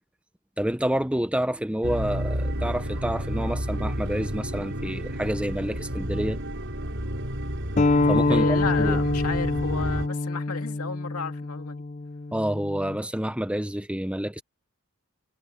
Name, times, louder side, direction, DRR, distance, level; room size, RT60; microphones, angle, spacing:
voice 1, 0.6-6.4 8.1-8.5 8.8-9.0 12.3-14.4, right 1 dB, 5° right, 0.9 m, -28 dB
sound 1, 1.8-10.1, equal, 55° right, 7.4 m, -31 dB
sound 2, 7.8-13.0, left 2 dB, 30° left, 0.5 m, -25 dB
voice 2, 8.3-11.8, left 4 dB, 80° left, 2.5 m, -32 dB
head